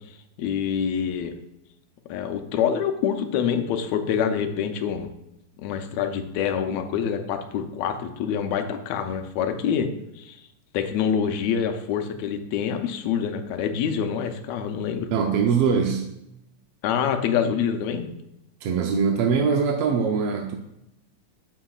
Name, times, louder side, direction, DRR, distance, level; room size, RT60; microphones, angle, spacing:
voice 1, 0.4-1.3 2.1-5.1 5.6-9.9 10.2-10.4 10.7-15.1 16.8-18.1, left 7 dB, 75° left, 7 dB, 1.9 m, -26 dB
voice 2, 15.1-16.1 18.6-20.6, right 6 dB, 75° right, 2 dB, 1.4 m, -22 dB
8.8 x 7.6 x 2.4 m, 0.84 s
omnidirectional pair, 3.3 m